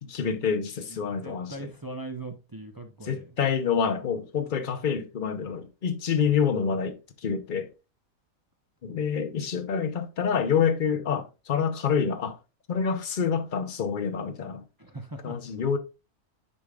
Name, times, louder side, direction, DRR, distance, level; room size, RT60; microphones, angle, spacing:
voice 1, 0.1-1.7 3.0-7.7 8.8-12.4 12.7-14.6 15.2-15.8, left 6 dB, 45° left, 0.9 m, -27 dB
voice 2, 0.9-3.3 14.8-15.4, right 2 dB, 20° right, 0.6 m, -40 dB
9.9 x 5.1 x 2.4 m
omnidirectional pair, 1.4 m